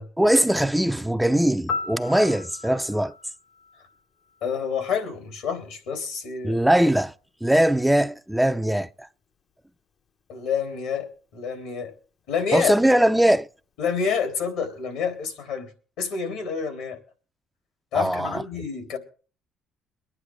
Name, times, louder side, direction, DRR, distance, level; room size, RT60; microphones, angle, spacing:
voice 1, 0.2-3.1 6.4-7.1 7.4-9.1 12.5-13.5 17.9-18.4, right 1 dB, 5° right, 0.5 m, -21 dB
Piano, 1.7-4.6 12.8-13.0, left 4 dB, 55° left, 1.0 m, -36 dB
voice 2, 4.4-6.7 10.3-11.9 12.3-12.7 13.8-15.7 16.0-17.0 17.9-19.0, left 6 dB, 85° left, 3.5 m, -28 dB
23.5 x 9.7 x 3.6 m
supercardioid pair, 75°, 0 cm